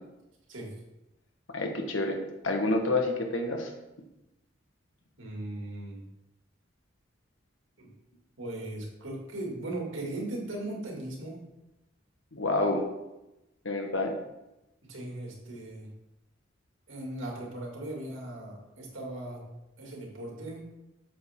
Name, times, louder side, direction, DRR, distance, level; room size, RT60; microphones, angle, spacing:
voice 1, 1.5-2.2 2.4-3.7 12.3-12.9 13.6-14.1, left 2 dB, 85° left, 3 dB, 1.4 m, -28 dB
voice 2, 5.2-6.0 7.8-7.9 8.4-11.4 14.8-15.9 16.9-19.4 19.8-20.6, right 1 dB, 90° right, -2 dB, 2.5 m, -38 dB
8.4 x 7.0 x 3.7 m, 0.96 s
head